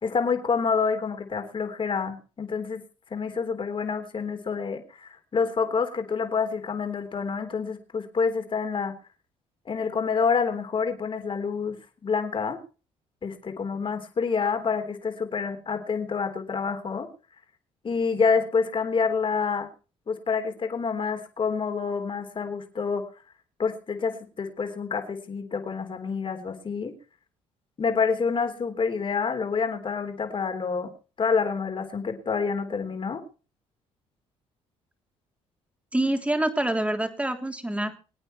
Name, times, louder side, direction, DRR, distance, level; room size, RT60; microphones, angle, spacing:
voice 1, 0.0-2.8 3.1-8.9 9.7-12.6 13.2-17.1 17.8-19.7 20.1-23.0 23.6-26.9 27.8-30.9 31.2-33.2, left 5 dB, 40° left, 6 dB, 3.6 m, -27 dB
voice 2, 35.9-37.9, right 1 dB, 10° right, 6 dB, 3.3 m, -26 dB
23.5 x 9.0 x 4.6 m, 0.36 s
supercardioid pair, 70°, 13 cm